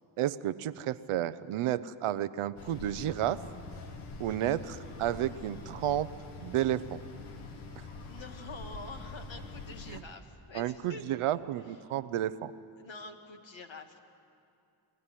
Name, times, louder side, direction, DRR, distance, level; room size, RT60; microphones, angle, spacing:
voice 1, 0.2-3.4 4.2-6.1 6.4-7.0 9.9-10.0 10.5-12.5, right 12 dB, 80° right, 14 dB, 0.8 m, -31 dB
sound 1, 2.6-10.0, left 3 dB, 90° left, 1.6 m, -45 dB
voice 2, 4.3-4.6 8.1-11.1 11.7-11.8 12.8-14.0, left 3 dB, 65° left, 4 dB, 2.3 m, -46 dB
23.5 x 16.0 x 9.9 m, 2.4 s
supercardioid pair, 45°, 49 cm